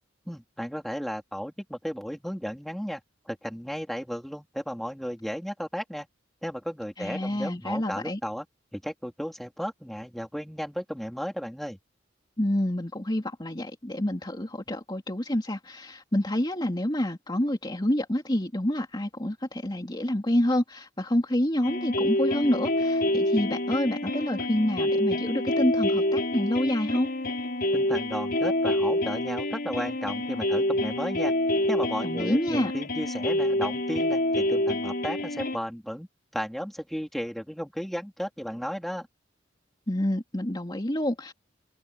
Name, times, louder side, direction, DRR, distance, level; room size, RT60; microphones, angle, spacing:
voice 1, 0.3-3.0 3.3-6.1 6.4-8.4 8.7-11.8 27.7-31.3 31.7-36.1 36.3-39.1, equal, ahead, 4.1 m, -34 dB
voice 2, 7.0-8.2 12.4-27.1 32.0-32.7 39.9-41.3, left 1 dB, 25° left, 2.7 m, -28 dB
sound 1, 21.6-35.6, left 1 dB, 50° left, 5.1 m, -27 dB
head